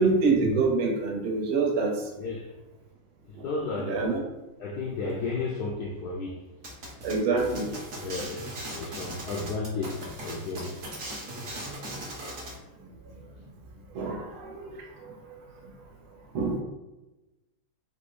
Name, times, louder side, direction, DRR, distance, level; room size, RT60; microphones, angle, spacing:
voice 1, 0.0-1.9 3.9-4.2 7.0-7.7 13.9-14.7 16.3-16.6, right 3 dB, 75° right, 1 dB, 1.6 m, -25 dB
voice 2, 2.2-2.5 3.3-4.1 4.6-6.4 8.0-10.8 14.0-14.1, left 3 dB, 75° left, -2 dB, 0.9 m, -33 dB
sound 1, 6.6-12.6, right 1 dB, 50° right, 1.1 m, -39 dB
4.1 x 2.7 x 4.6 m, 1.1 s
omnidirectional pair, 2.3 m